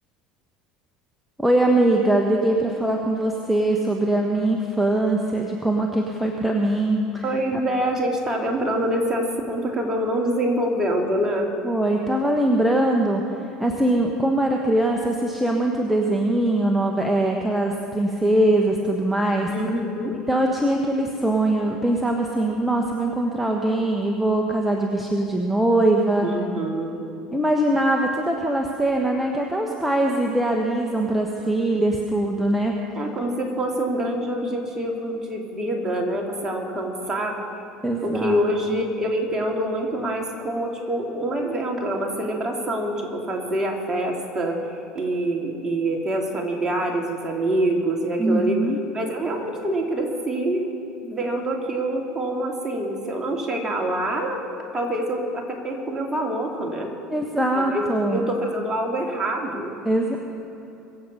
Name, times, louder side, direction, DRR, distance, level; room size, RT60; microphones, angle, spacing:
voice 1, 1.4-7.2 7.5-7.6 11.6-13.2 13.6-19.5 20.3-26.3 27.3-32.7 37.8-38.4 38.7-38.8 48.2-48.8 57.1-58.3 59.8-60.2, right 1 dB, 5° right, 1 dB, 1.3 m, -22 dB
voice 2, 7.2-11.5 19.5-20.2 26.2-27.0 33.0-37.4 38.0-44.6 44.9-48.6 48.9-50.6 51.0-54.4 54.7-56.9 57.5-59.7, right 1 dB, 25° right, 1 dB, 2.9 m, -25 dB
23.5 x 7.9 x 5.5 m, 2.8 s
hypercardioid pair, 70°, 3 cm